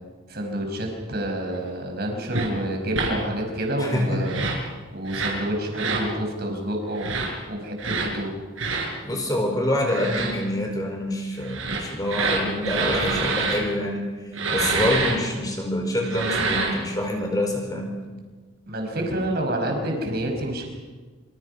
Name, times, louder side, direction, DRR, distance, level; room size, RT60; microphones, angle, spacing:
voice 1, 0.3-4.4 4.9-8.3 18.7-20.7, right 1 dB, 50° right, 2 dB, 5.7 m, -28 dB
sound 1, 2.3-2.5 2.9-3.1 4.2-4.6 5.1-5.4 5.7-6.1 7.0-7.3 7.8-8.1 8.6-8.9 9.8-10.3 11.4-13.6 14.3-15.1 16.0-16.8, right 4 dB, 70° right, 5.5 m, -26 dB
voice 2, 3.8-4.2 9.0-14.1 14.5-17.9, left 1 dB, 20° left, 2 dB, 4.4 m, -26 dB
26.5 x 26.5 x 5.6 m, 1.4 s
head